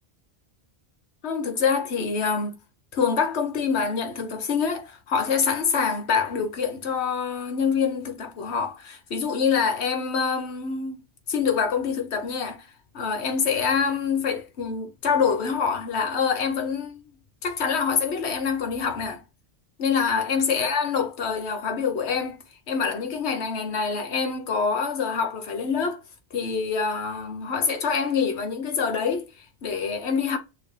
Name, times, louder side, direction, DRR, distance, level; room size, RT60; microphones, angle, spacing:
voice 1, 1.2-2.5 2.9-11.0 11.3-12.7 12.9-17.0 17.4-19.2 19.8-26.0 26.3-30.4, left 6 dB, 85° left, 1.2 m, -26 dB
6.1 x 2.7 x 3.2 m
omnidirectional pair, 1.1 m